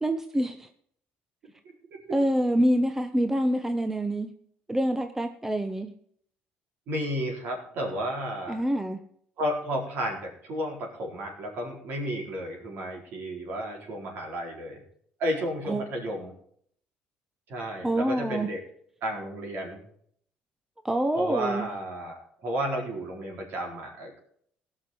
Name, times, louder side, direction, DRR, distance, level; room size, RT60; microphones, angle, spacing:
voice 1, 0.0-0.7 2.1-4.3 4.7-5.9 8.5-9.0 15.7-15.8 17.8-18.5 20.8-21.7, right 1 dB, 10° right, 8 dB, 0.8 m, -26 dB
voice 2, 6.9-8.6 9.4-14.8 15.2-16.3 17.5-18.6 19.0-19.8 21.2-24.2, equal, 60° right, 0 dB, 4.5 m, -32 dB
17.5 x 6.2 x 5.6 m, 0.64 s
cardioid pair, 105°, 4 cm